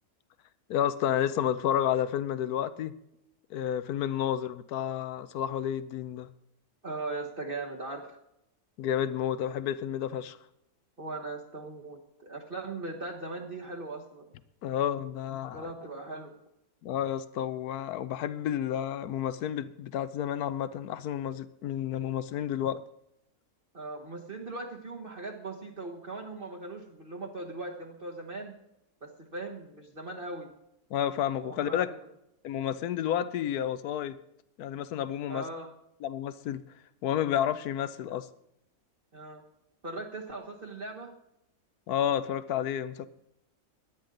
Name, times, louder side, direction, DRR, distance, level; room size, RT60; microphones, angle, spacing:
voice 1, 0.7-2.9 3.5-6.3 8.8-10.4 14.6-15.7 16.8-22.8 30.9-31.9 32.4-34.1 34.6-35.4 36.0-36.6 37.0-38.3 41.9-43.1, left 10 dB, 80° left, 15 dB, 1.2 m, -30 dB
voice 2, 6.8-8.2 11.0-14.3 15.5-16.3 23.7-28.6 29.0-30.5 31.4-32.0 35.3-35.7 39.1-39.4 39.8-41.1, right 2 dB, 40° right, -1 dB, 1.5 m, -39 dB
17.0 x 11.5 x 3.9 m, 0.81 s
omnidirectional pair, 1.6 m